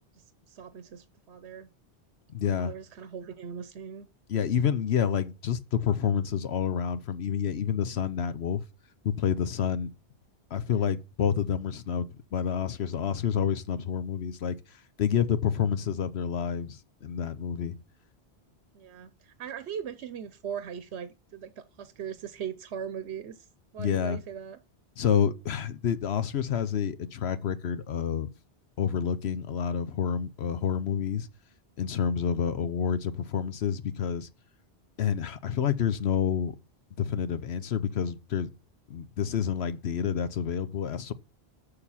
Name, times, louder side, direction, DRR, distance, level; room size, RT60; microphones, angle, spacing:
voice 1, 0.1-1.7 2.4-4.1 10.7-11.0 18.7-21.5 21.8-23.5 23.7-24.6, right 8 dB, 75° right, 1.0 m, -40 dB
voice 2, 2.3-2.7 4.3-8.6 9.0-9.9 10.5-17.7 23.8-24.2 25.0-28.3 28.8-31.3 31.8-34.3 35.0-36.5 37.0-38.5 38.9-41.1, left 8 dB, 70° left, 1.0 m, -28 dB
6.8 x 6.8 x 5.6 m
omnidirectional pair, 1.1 m